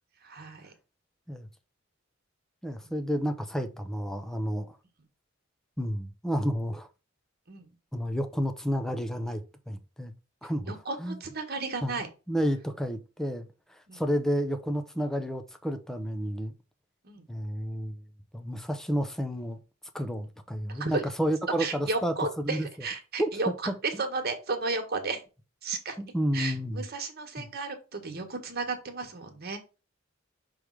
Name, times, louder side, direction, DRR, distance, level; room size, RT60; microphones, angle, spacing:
voice 1, 0.2-0.7 2.8-2.9 7.5-7.7 10.7-12.1 13.9-14.0 17.0-17.3 20.7-21.0 21.6-23.5 23.8-25.2 25.6-26.0 26.3-29.6, right 3 dB, 50° right, 1.6 m, -33 dB
voice 2, 2.6-4.8 5.8-6.9 7.9-10.1 10.4-10.7 11.0-11.2 11.8-12.0 12.3-16.5 17.3-18.0 18.3-19.6 19.9-22.7 23.2-23.3 23.7-24.0 26.0-26.8 27.4-27.5, equal, ahead, 0.7 m, -31 dB
6.1 x 3.5 x 4.8 m
head